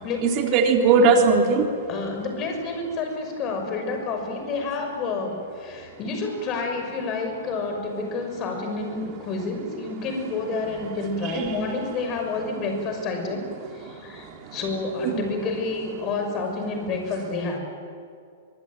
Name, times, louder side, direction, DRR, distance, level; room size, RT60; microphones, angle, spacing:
voice 1, 0.2-1.6 11.3-11.7 15.0-15.2, right 4 dB, 35° right, 2 dB, 3.5 m, -19 dB
voice 2, 1.9-13.4 13.7-17.6, left 3 dB, 30° left, 4 dB, 6.3 m, -29 dB
24.5 x 22.5 x 9.2 m, 2.3 s
hypercardioid pair, 145°, 0 cm